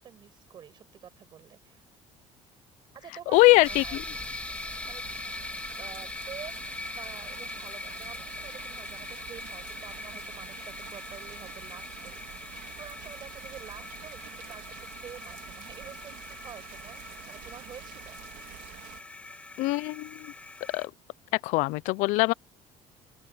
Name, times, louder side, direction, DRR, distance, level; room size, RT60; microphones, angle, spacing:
voice 1, 0.0-1.8 2.9-4.0 4.9-5.0 5.7-18.2, right 9 dB, 35° right, 5.7 m, -48 dB
voice 2, 3.3-3.8 19.6-20.3 20.7-20.9 21.4-22.3, left 22 dB, 75° left, 0.5 m, -22 dB
sound 1, 3.3-19.0, right 17 dB, 80° right, 3.4 m, -48 dB
sound 2, 3.6-20.9, left 3 dB, 10° left, 2.0 m, -41 dB
open air
cardioid pair, 170°, 13 cm